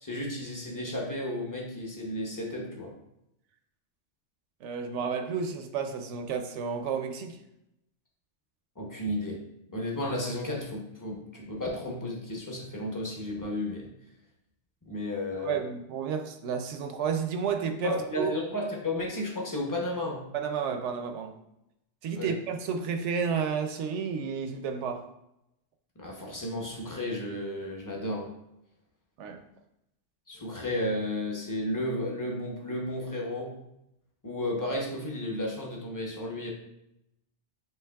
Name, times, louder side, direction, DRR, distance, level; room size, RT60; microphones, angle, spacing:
voice 1, 0.0-2.9 8.8-9.4 9.7-13.9 14.9-15.6 17.8-20.3 22.1-22.3 26.0-28.3 30.3-33.6 34.2-36.5, left 1 dB, 20° left, -1 dB, 0.7 m, -33 dB
voice 2, 4.6-7.4 15.4-18.3 20.3-21.3 22.0-25.1 29.2-29.4, right 6 dB, 75° right, 6 dB, 0.9 m, -31 dB
7.8 x 3.0 x 2.3 m, 0.84 s
omnidirectional pair, 1.3 m